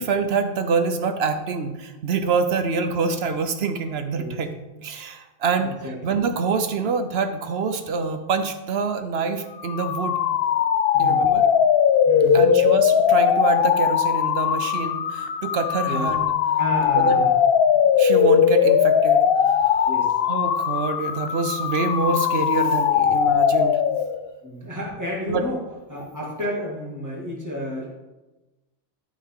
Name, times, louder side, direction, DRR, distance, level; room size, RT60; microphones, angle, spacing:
voice 1, 0.0-10.2 11.0-11.5 12.3-16.3 17.0-17.2 18.0-19.8 20.3-23.8 25.3-25.4, right 4 dB, 60° right, 8 dB, 1.0 m, -26 dB
voice 2, 5.5-6.0 10.9-11.3 12.0-12.5 15.8-16.1 16.6-17.3 19.9-20.2 24.4-25.6 25.9-27.9, equal, 15° right, -4 dB, 2.3 m, -31 dB
sound 1, 9.6-24.3, left 8 dB, 60° left, 0.7 m, -20 dB
12.0 x 5.6 x 3.7 m, 1.1 s
omnidirectional pair, 1.2 m